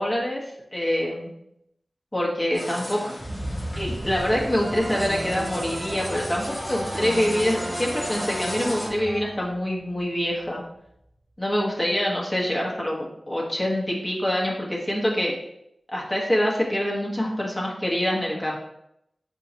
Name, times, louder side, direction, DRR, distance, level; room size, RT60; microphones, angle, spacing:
voice 1, 0.0-1.3 2.1-3.2 3.7-10.6 11.4-15.3 15.9-18.6, equal, 25° left, -3 dB, 1.2 m, -25 dB
sound 1, 2.5-8.9, left 1 dB, 45° left, 1.4 m, -35 dB
sound 2, 3.2-11.1 11.5-11.6, equal, 10° right, 0.9 m, -38 dB
sound 3, 4.6-9.8, right 1 dB, 35° right, 0.3 m, -35 dB
4.3 x 3.7 x 2.8 m, 0.78 s
cardioid pair, 40°, 0 cm